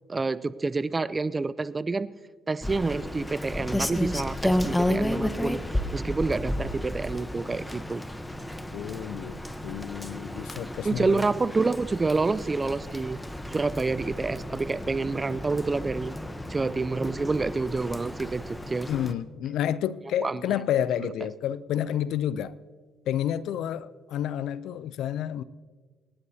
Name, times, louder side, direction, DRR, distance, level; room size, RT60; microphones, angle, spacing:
voice 1, 0.1-2.1 2.5-8.0 10.8-13.2 13.5-16.1 16.5-18.9 20.2-20.5 21.0-21.1, right 3 dB, 25° right, 0.5 m, -28 dB
Rain, 2.6-19.1, left 1 dB, 10° left, 0.9 m, -32 dB
voice 2, 8.7-11.2 18.9-22.5 23.1-25.4, left 10 dB, 70° left, 0.5 m, -30 dB
24.5 x 11.0 x 2.8 m
hypercardioid pair, 60°, 0 cm